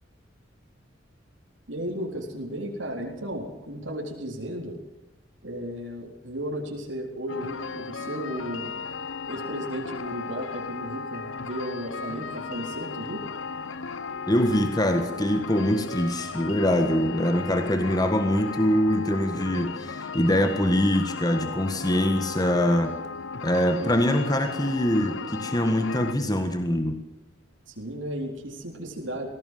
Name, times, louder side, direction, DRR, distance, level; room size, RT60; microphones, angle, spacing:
voice 1, 1.7-4.8 5.4-8.7 9.2-13.2 27.7-29.3, equal, 75° right, -1 dB, 4.1 m, -34 dB
sound 1, 7.3-26.1, left 5 dB, 85° left, 1.0 m, -36 dB
voice 2, 14.3-22.9 23.4-27.0, equal, 20° left, 7 dB, 1.6 m, -24 dB
20.0 x 17.5 x 7.8 m, 0.85 s
head